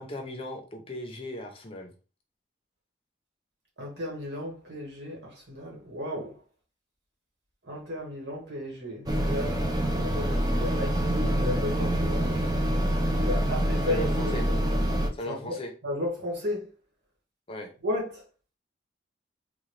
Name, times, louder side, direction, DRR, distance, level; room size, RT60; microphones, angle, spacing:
voice 1, 0.0-1.9 13.9-14.4 15.1-15.7 17.5-17.7, left 1 dB, 30° left, 0.6 m, -37 dB
voice 2, 3.8-6.3 7.6-9.6 9.9-12.3 13.2-14.7 15.3-15.5 15.8-16.7 17.8-18.2, left 1 dB, 65° right, 1.5 m, -34 dB
sound 1, 9.1-15.1, equal, 20° right, 0.5 m, -26 dB
3.8 x 2.3 x 3.1 m
head